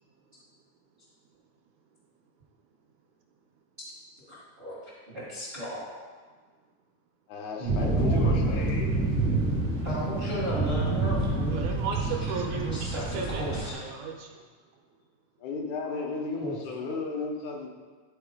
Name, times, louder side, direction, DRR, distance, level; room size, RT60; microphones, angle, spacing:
voice 1, 4.2-4.8 5.1-5.9 7.6-8.6 9.8-11.6 12.6-13.8 15.8-16.1 16.4-16.6, right 1 dB, 35° right, -7 dB, 0.9 m, -34 dB
voice 2, 7.3-9.0 13.1-13.8 15.4-17.7, left 3 dB, 75° left, 0 dB, 2.2 m, -35 dB
sound 1, 7.7-13.7, right 2 dB, 60° right, 0.7 m, -28 dB
voice 3, 11.5-14.4, right 6 dB, 75° right, 1 dB, 2.0 m, -35 dB
12.0 x 4.3 x 3.6 m, 1.5 s
omnidirectional pair, 3.5 m